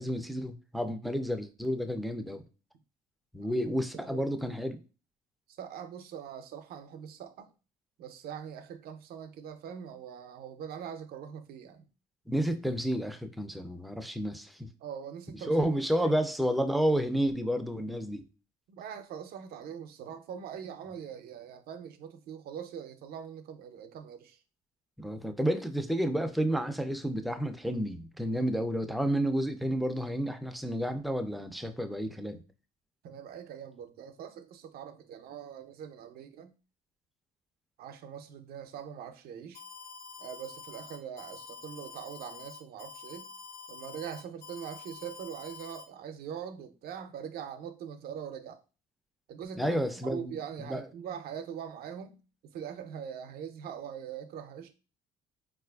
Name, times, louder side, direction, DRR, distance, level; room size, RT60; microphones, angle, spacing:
voice 1, 0.0-2.4 3.3-4.8 12.3-14.7 15.5-18.3 25.0-32.4 49.6-50.8, equal, ahead, 0.3 m, -31 dB
voice 2, 5.5-7.5 8.0-11.9 14.8-16.1 18.7-24.4 33.0-36.6 37.8-39.6 40.2-43.3 43.7-48.6 49.3-54.7, right 8 dB, 65° right, 0.5 m, -42 dB
Alarm, 39.5-45.8, left 5 dB, 70° left, 1.1 m, -47 dB
4.2 x 2.4 x 2.2 m
cardioid pair, 110°, 17 cm